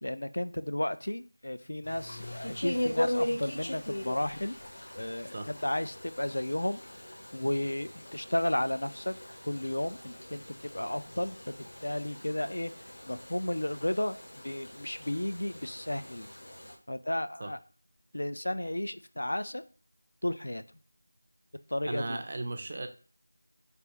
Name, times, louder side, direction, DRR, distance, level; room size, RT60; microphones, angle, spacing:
voice 1, 0.0-4.6 4.9-6.8 7.3-9.2 9.5-11.6 11.8-12.7 13.1-14.2 14.4-16.3 16.9-17.6 18.1-19.6 20.2-20.6 21.7-22.2, left 1 dB, 75° left, 12 dB, 0.3 m, -33 dB
sound 1, 1.8-16.8, left 1 dB, 60° left, 0.9 m, -39 dB
voice 2, 21.9-22.9, right 2 dB, 25° right, 6 dB, 0.3 m, -36 dB
3.3 x 2.6 x 4.3 m, 0.40 s
figure-of-eight pair, 175°, 0 cm